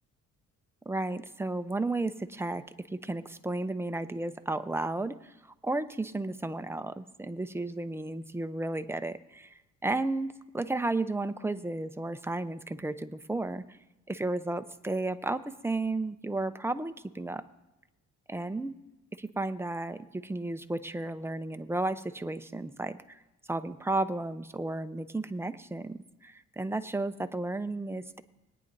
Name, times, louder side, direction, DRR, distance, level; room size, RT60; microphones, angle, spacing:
voice 1, 0.9-5.3 5.6-13.8 14.1-17.4 18.3-18.7 19.1-23.2 23.5-28.2, right 2 dB, 10° right, 10 dB, 0.6 m, -33 dB
21.0 x 9.7 x 2.6 m, 1.0 s
cardioid pair, 90°, 30 cm